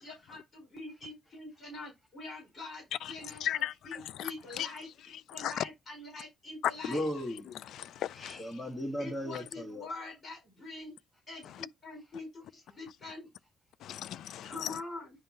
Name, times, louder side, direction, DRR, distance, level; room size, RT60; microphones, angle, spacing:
voice 1, 0.0-4.9 5.3-7.1 9.0-10.9 11.3-13.3 14.4-15.1, left 2 dB, 45° left, 4.9 m, -45 dB
voice 2, 3.4-4.3 4.6-4.7 5.4-5.6 7.6-8.4 13.8-14.8, left 11 dB, 75° left, 0.3 m, -36 dB
voice 3, 6.9-7.5 8.1-9.9, equal, 20° left, 1.5 m, -36 dB
10.0 x 3.6 x 2.8 m
cardioid pair, 90°, 0 cm